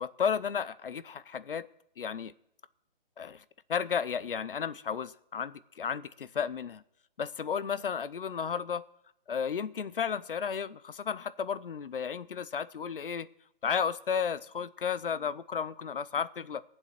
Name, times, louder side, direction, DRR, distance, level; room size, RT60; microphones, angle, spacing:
voice 1, 0.0-1.7 2.0-2.3 3.2-3.4 3.7-6.8 7.2-8.8 9.3-13.3 13.6-16.6, left 7 dB, 65° left, 18 dB, 0.7 m, -33 dB
20.5 x 7.6 x 5.9 m, 0.75 s
hypercardioid pair, 175°, 29 cm